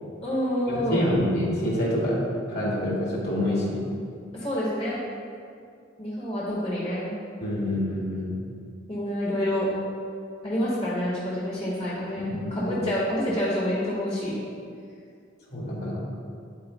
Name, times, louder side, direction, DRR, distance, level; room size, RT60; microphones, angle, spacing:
voice 1, 0.2-1.1 4.3-5.0 6.0-7.1 8.9-9.7 10.4-14.4, equal, 30° left, -8 dB, 1.6 m, -27 dB
voice 2, 0.9-2.2 2.5-3.9 7.4-8.4 12.2-12.8 15.5-16.0, left 1 dB, 55° left, -5 dB, 2.1 m, -27 dB
10.5 x 8.6 x 2.3 m, 2.3 s
head